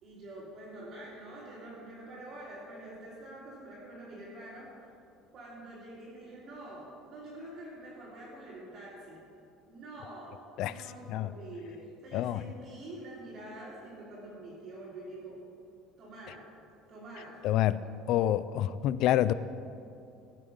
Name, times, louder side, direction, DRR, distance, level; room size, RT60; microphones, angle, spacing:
voice 1, 0.0-4.7 5.3-9.2 9.7-15.4 16.0-16.4 16.9-17.4 17.8-17.9, right 1 dB, 35° right, -10 dB, 3.4 m, -46 dB
voice 2, 17.4-17.8 18.1-19.3, left 12 dB, 55° left, 16 dB, 0.4 m, -27 dB
16.5 x 7.4 x 5.4 m, 2.6 s
cardioid pair, 165°, 0 cm